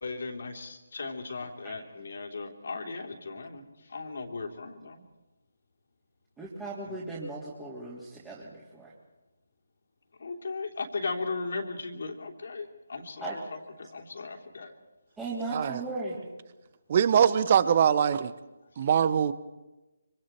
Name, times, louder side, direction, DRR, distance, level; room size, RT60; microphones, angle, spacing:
voice 1, 0.0-5.0 6.8-7.0 10.2-14.7, left 3 dB, 60° left, 3 dB, 3.2 m, -37 dB
voice 2, 6.4-8.9 13.2-13.4 15.2-16.2, right 3 dB, 10° right, -8 dB, 3.3 m, -37 dB
voice 3, 16.9-18.3 18.8-19.3, right 8 dB, 40° right, 15 dB, 1.0 m, -22 dB
26.0 x 24.5 x 4.5 m, 1.1 s
figure-of-eight pair, 150°, 0 cm